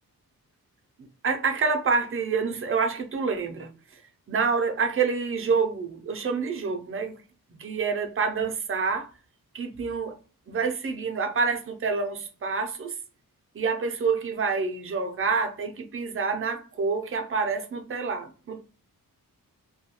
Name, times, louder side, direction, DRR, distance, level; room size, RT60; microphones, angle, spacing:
voice 1, 1.2-3.7 4.3-7.2 7.5-9.1 9.5-10.2 10.5-12.9 13.5-18.6, right 5 dB, 40° right, 0.4 m, -27 dB
2.2 x 2.2 x 2.8 m
wide cardioid pair, 150°, 35 cm